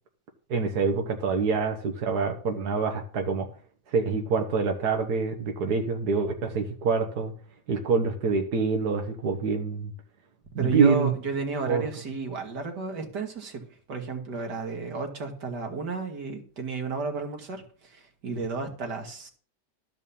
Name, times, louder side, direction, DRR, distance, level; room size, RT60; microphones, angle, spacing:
voice 1, 0.5-3.5 3.9-7.3 7.7-9.9 10.6-11.1 11.7-11.8, right 5 dB, 70° right, 3 dB, 1.8 m, -26 dB
voice 2, 10.6-13.6 13.9-19.3, right 4 dB, 90° right, 3 dB, 2.5 m, -32 dB
13.0 x 5.4 x 7.0 m, 0.43 s
omnidirectional pair, 1.7 m